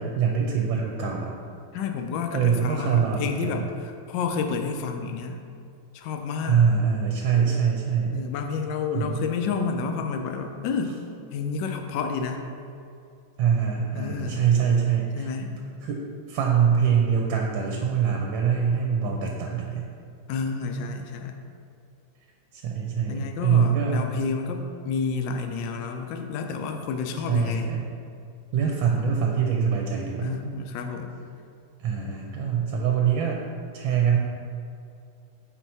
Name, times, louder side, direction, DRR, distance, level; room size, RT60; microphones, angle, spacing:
voice 1, 0.0-1.3 2.3-3.5 6.4-8.2 8.9-9.2 13.4-15.5 15.8-19.9 22.5-24.1 27.3-27.9 28.5-30.4 31.8-33.4 33.7-34.2, right 7 dB, 80° right, 0 dB, 1.4 m, -24 dB
voice 2, 1.7-5.4 5.9-6.7 8.1-11.0 11.3-12.5 13.9-14.5 15.2-15.5 20.3-21.4 23.1-27.7 30.2-31.1, left 5 dB, 75° left, 5 dB, 1.2 m, -30 dB
4.5 x 4.4 x 5.4 m, 2.4 s
omnidirectional pair, 2.1 m